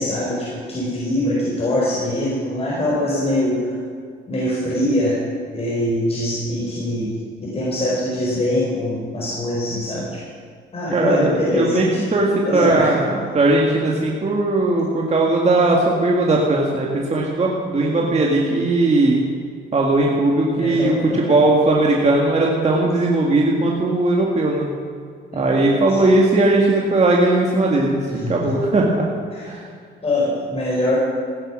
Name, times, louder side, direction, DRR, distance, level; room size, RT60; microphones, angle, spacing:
voice 1, 0.0-3.7 4.3-5.2 5.5-7.2 7.4-10.2 10.7-12.0 12.4-13.0 18.0-18.2 20.6-21.3 25.3-25.6 25.9-26.1 28.1-28.6 29.3-29.5 30.0-31.0, left 1 dB, 30° left, -6 dB, 4.7 m, -23 dB
voice 2, 10.9-19.2 19.7-24.7 25.3-29.1 29.5-29.6, right 2 dB, 35° right, -2 dB, 2.0 m, -18 dB
16.5 x 9.8 x 6.3 m, 2.1 s
cardioid pair, 90°, 20 cm